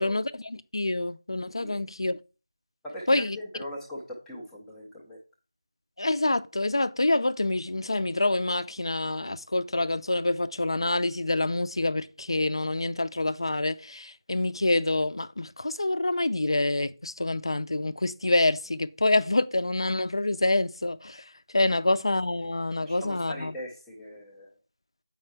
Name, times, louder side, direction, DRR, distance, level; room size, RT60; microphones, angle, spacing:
voice 1, 0.0-2.2 3.1-3.4 6.0-21.2 21.5-23.5, left 2 dB, 65° left, 0.5 m, -27 dB
voice 2, 2.8-5.2 21.7-21.8 22.8-24.5, equal, ahead, 0.4 m, -40 dB
7.7 x 5.3 x 4.6 m
figure-of-eight pair, 180°, 3 cm